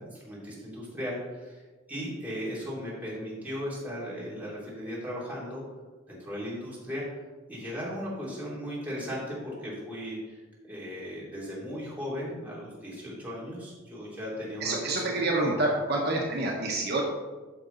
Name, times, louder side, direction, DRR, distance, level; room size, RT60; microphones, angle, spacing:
voice 1, 0.0-1.6 1.9-5.6 6.1-7.2 7.5-10.4 10.7-15.3, equal, 10° right, -7 dB, 2.8 m, -37 dB
voice 2, 14.6-17.0, right 2 dB, 55° right, -1 dB, 1.1 m, -27 dB
9.7 x 6.0 x 3.9 m, 1.3 s
head